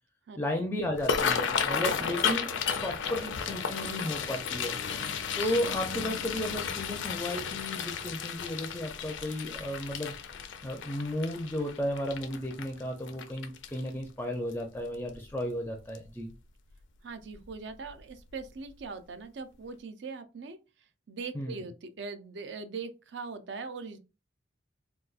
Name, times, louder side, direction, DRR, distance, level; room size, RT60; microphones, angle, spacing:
voice 1, 0.4-4.8 5.4-10.1 10.6-16.3 21.3-21.6, left 1 dB, 10° left, 0.4 m, -34 dB
sound 1, 0.9-14.0 14.5-14.8 15.1-15.5 16.0-16.1 17.3-17.5 17.9-18.0 18.5-18.6, left 6 dB, 75° left, 0.5 m, -33 dB
voice 2, 17.0-20.6 21.1-24.0, right 4 dB, 65° right, 0.5 m, -41 dB
3.8 x 2.3 x 2.4 m
head